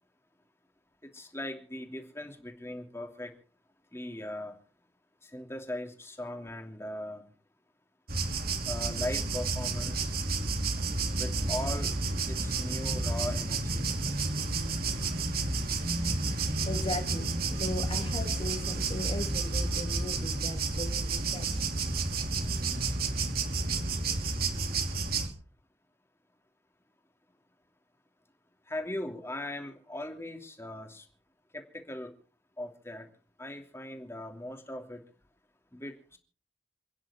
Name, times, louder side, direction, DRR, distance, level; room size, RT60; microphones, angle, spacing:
voice 1, 1.1-3.3 3.9-4.5 5.2-7.2 8.7-10.1 11.2-11.9 12.3-13.9 28.7-31.1 31.5-32.1 32.6-33.1 33.4-35.0 35.7-36.2, left 1 dB, 15° left, 4 dB, 2.9 m, -39 dB
sound 1, 8.1-25.3, right 3 dB, 55° right, 2.9 m, -31 dB
voice 2, 16.6-21.6, left 2 dB, 30° left, 6 dB, 2.8 m, -38 dB
29.0 x 10.5 x 4.4 m, 0.40 s
head